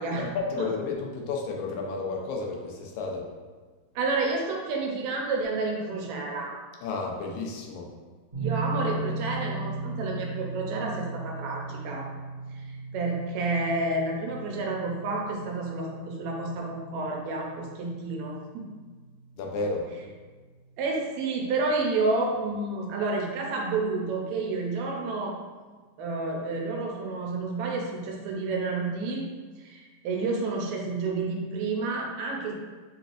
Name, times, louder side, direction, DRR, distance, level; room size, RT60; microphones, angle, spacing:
voice 1, 0.2-3.3 6.8-7.9 19.4-19.9, left 3 dB, 90° left, 0 dB, 2.1 m, -32 dB
voice 2, 4.0-6.6 8.4-12.1 12.5-18.7 20.8-25.4 26.0-29.3 29.6-32.5, right 3 dB, 75° right, 0 dB, 1.9 m, -30 dB
sound 1, 8.3-21.2, right 3 dB, 45° right, 2.0 m, -38 dB
6.6 x 3.2 x 2.5 m, 1.4 s
omnidirectional pair, 3.3 m